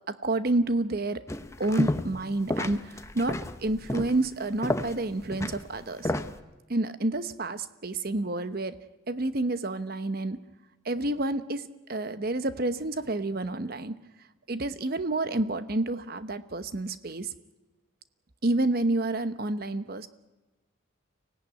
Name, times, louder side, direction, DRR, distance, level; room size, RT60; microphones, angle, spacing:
voice 1, 0.1-1.2 1.6-6.1 6.7-8.8 9.1-10.4 10.8-14.0 14.5-17.3 18.4-20.1, right 2 dB, 45° right, 12 dB, 0.9 m, -29 dB
sound 1, 1.3-2.2 2.5-6.4, left 1 dB, 15° left, 0.8 m, -31 dB
24.5 x 17.0 x 9.5 m, 1.2 s
head